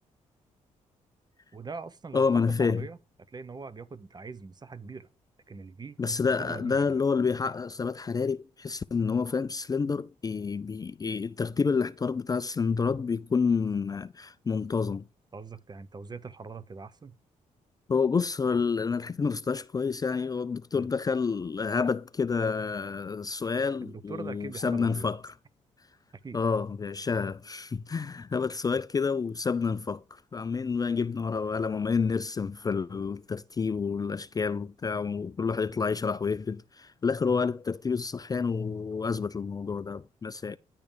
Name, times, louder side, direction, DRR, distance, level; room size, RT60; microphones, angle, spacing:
voice 1, 1.5-2.3 2.6-3.0 3.3-5.1 5.5-6.0 6.4-7.0 15.3-17.2 20.7-20.9 23.8-25.1 26.2-26.4 36.3-36.4, right 4 dB, 30° right, 0.8 m, -42 dB
voice 2, 2.1-2.9 6.0-15.0 17.9-25.3 26.3-40.6, left 5 dB, 30° left, 0.4 m, -29 dB
10.5 x 3.5 x 6.7 m
cardioid pair, 65°, 14 cm